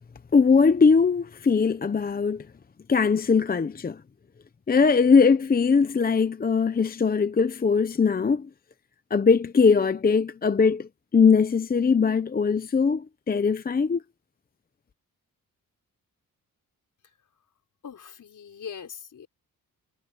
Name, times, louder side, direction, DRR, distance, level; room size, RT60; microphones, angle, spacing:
voice 1, 0.3-2.5 2.9-4.0 4.7-8.5 9.1-14.0, left 5 dB, 25° left, 0.7 m, -21 dB
voice 2, 17.8-19.3, left 7 dB, 60° left, 4.6 m, -41 dB
wide cardioid pair, 130°, 35 cm